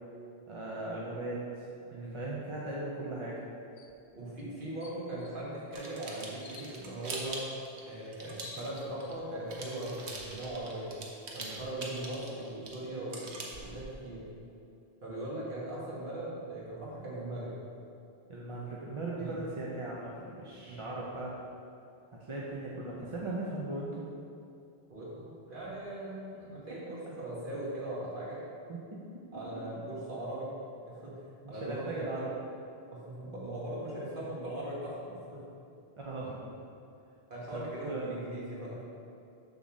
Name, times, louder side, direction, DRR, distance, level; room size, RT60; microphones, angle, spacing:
voice 1, 0.5-1.7 2.1-3.4 18.3-21.4 22.3-24.1 28.7-28.8 31.4-32.3 36.0-36.5 37.5-38.1, right 2 dB, 35° right, -5 dB, 0.7 m, -38 dB
voice 2, 1.8-2.2 4.2-7.5 7.9-11.0 11.3-14.3 15.0-17.5 19.2-19.3 20.7-20.9 24.9-28.4 29.3-30.5 30.9-31.2 31.5-32.1 32.9-35.4 37.3-38.8, right 1 dB, 50° right, -7 dB, 2.0 m, -39 dB
sound 1, 3.8-4.0 4.4-4.5 4.8-5.3 6.4-6.7 7.9-8.0 8.2-9.1, left 5 dB, 55° left, 0.7 m, -50 dB
sound 2, 5.7-9.2 9.5-14.0, right 3 dB, 80° right, 1.2 m, -43 dB
7.1 x 4.0 x 6.2 m, 2.6 s
omnidirectional pair, 1.1 m